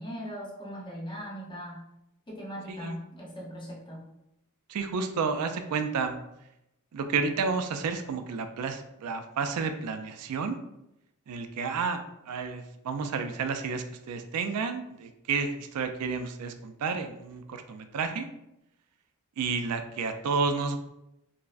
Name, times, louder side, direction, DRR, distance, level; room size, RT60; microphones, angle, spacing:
voice 1, 0.0-1.8 2.3-4.0, equal, 20° left, -3 dB, 0.8 m, -39 dB
voice 2, 4.7-6.2 6.9-10.6 11.3-18.3 19.4-20.8, right 5 dB, 90° right, 8 dB, 0.4 m, -31 dB
4.5 x 2.0 x 2.5 m, 0.86 s
head